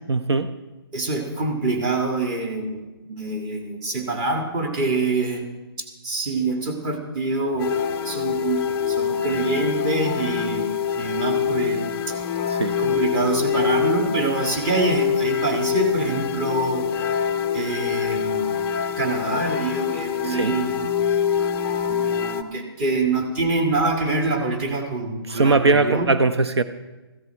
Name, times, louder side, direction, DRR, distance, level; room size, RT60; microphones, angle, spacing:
voice 1, 0.1-0.6 12.5-12.8 20.2-20.6 25.3-26.6, right 3 dB, 75° right, 12 dB, 0.8 m, -20 dB
voice 2, 0.9-2.8 3.1-5.5 5.8-7.7 8.0-10.7 11.0-12.1 12.8-16.9 17.5-18.5 19.0-20.9 21.8-26.1, right 3 dB, 20° right, 3 dB, 1.8 m, -25 dB
sound 1, 7.6-22.4, left 8 dB, 10° left, 0.5 m, -25 dB
15.5 x 15.0 x 4.5 m, 1.1 s
hypercardioid pair, 150°, 14 cm